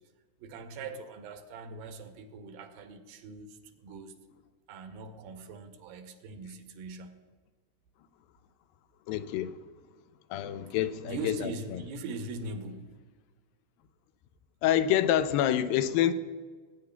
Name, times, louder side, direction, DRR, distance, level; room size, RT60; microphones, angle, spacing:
voice 1, 0.4-4.1 4.7-7.2 10.7-13.0, right 3 dB, 85° right, 2.5 m, -41 dB
voice 2, 9.1-9.5 10.3-11.8 14.6-16.1, left 11 dB, 85° left, 2.3 m, -27 dB
19.0 x 9.3 x 2.3 m
omnidirectional pair, 4.1 m